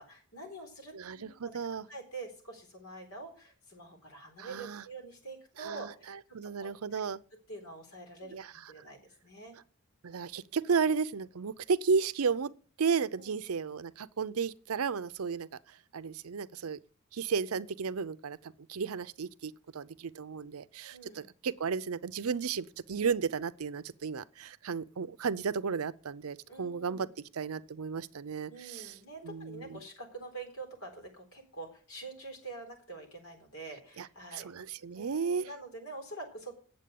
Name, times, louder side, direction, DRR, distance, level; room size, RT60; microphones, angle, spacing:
voice 1, 0.0-1.5 1.9-6.1 6.6-7.0 7.5-8.4 8.7-9.6 13.2-13.3 20.9-21.3 26.5-27.1 28.5-34.5 34.9-36.5, right 3 dB, 80° left, 4.0 m, -46 dB
voice 2, 0.9-1.9 4.4-4.8 5.6-7.2 8.3-8.5 10.0-12.5 12.8-15.5 15.9-16.8 17.1-27.1 27.3-28.9 29.2-29.8 34.0-34.1 34.3-35.5, right 5 dB, 85° right, 0.6 m, -33 dB
8.9 x 7.5 x 8.5 m
head